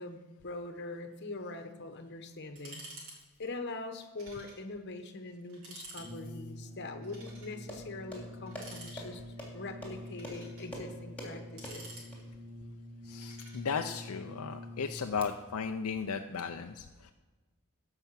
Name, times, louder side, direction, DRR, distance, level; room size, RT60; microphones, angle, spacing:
voice 1, 0.0-2.9 3.4-9.2 9.5-12.0, left 2 dB, 50° left, 7 dB, 1.1 m, -43 dB
sound 1, 2.6-3.2 3.4-3.5 4.2-4.6 5.0-5.1 5.5-6.1 7.0-7.6 8.5-9.3 9.9-10.7 11.3-12.5 13.2-13.9, right 2 dB, 70° right, 3.7 m, -50 dB
Brass instrument, 6.0-15.3, left 1 dB, 25° right, 1.5 m, -46 dB
sound 2, 7.3-12.2, right 1 dB, 5° left, 3.0 m, -47 dB
voice 2, 13.1-17.1, left 6 dB, 75° left, 6 dB, 0.5 m, -36 dB
15.0 x 5.8 x 5.7 m, 1.3 s
head